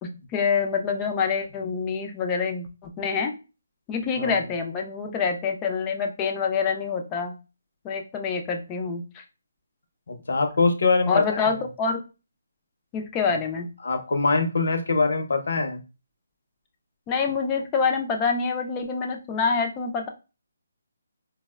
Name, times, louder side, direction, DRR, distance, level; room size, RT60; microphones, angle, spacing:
voice 1, 0.0-3.3 3.9-7.3 7.8-9.2 11.1-12.0 12.9-13.7 17.1-20.1, left 5 dB, 15° left, 3 dB, 0.4 m, -26 dB
voice 2, 10.1-11.4 13.3-13.4 13.8-15.8, left 3 dB, 65° left, 5 dB, 0.7 m, -23 dB
4.6 x 2.1 x 2.2 m, 0.30 s
hypercardioid pair, 175°, 0 cm